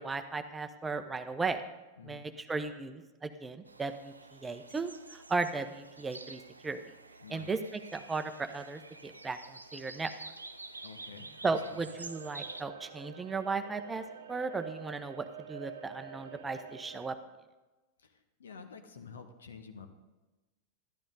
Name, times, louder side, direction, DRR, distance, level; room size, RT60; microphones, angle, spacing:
voice 1, 0.0-1.6 2.0-6.8 7.3-10.1 11.4-17.2, right 4 dB, 15° right, 9 dB, 0.8 m, -36 dB
voice 2, 2.0-2.3 7.2-7.5 10.8-11.3 11.7-11.8 18.0-19.9, left 5 dB, 70° left, 7 dB, 1.3 m, -49 dB
sound 1, 3.7-12.6, right 3 dB, 80° right, 0.6 m, -49 dB
sound 2, 11.8-17.1, right 7 dB, 60° right, 0.9 m, -48 dB
13.0 x 12.0 x 3.9 m, 1.1 s
figure-of-eight pair, 90°, 0 cm